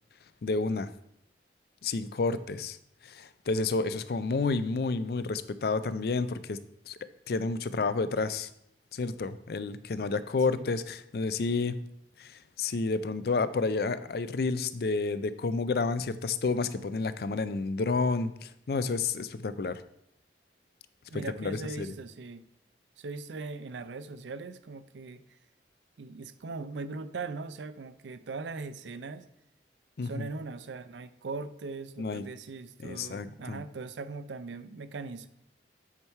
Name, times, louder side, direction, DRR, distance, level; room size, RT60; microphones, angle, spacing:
voice 1, 0.4-0.9 1.8-2.8 3.0-6.6 6.9-7.0 7.3-8.5 8.9-11.7 12.2-19.8 21.1-21.9 30.0-30.1 32.0-32.2 32.8-33.6, left 3 dB, 60° left, 14 dB, 0.4 m, -30 dB
voice 2, 21.1-22.4 23.0-25.4 26.0-29.2 30.0-35.3, right 3 dB, 85° right, 13 dB, 0.5 m, -40 dB
8.5 x 4.6 x 4.6 m, 0.75 s
head